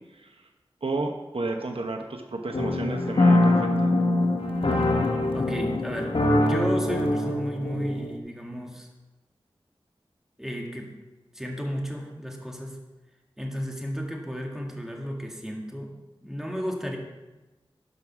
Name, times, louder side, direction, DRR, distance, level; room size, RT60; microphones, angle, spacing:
voice 1, 0.8-4.0, right 2 dB, 70° right, 4 dB, 1.0 m, -32 dB
sound 1, 2.5-8.2, left 2 dB, 65° left, 1.2 m, -23 dB
voice 2, 5.3-6.2 6.5-8.9 10.4-10.9 11.3-12.8 13.4-15.9 16.2-17.0, equal, 5° right, 0 dB, 2.1 m, -33 dB
12.5 x 5.4 x 6.0 m, 1.1 s
wide cardioid pair, 55°, 10 cm